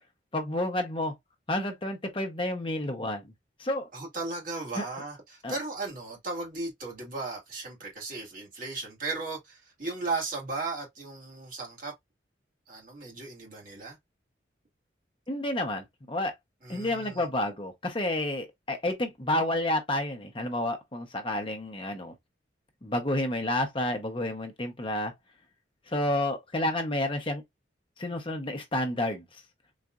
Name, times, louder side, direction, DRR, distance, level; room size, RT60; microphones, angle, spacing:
voice 1, 0.3-1.1 1.5-3.2 3.6-3.9 4.7-4.8 5.4-5.5 15.3-16.3 16.7-22.1 22.8-25.1 25.9-27.4 28.0-29.2, left 1 dB, 30° left, 0.8 m, -30 dB
voice 2, 3.9-11.9 12.7-14.0 16.6-17.3, right 3 dB, 50° right, 1.7 m, -36 dB
4.0 x 2.5 x 2.3 m
head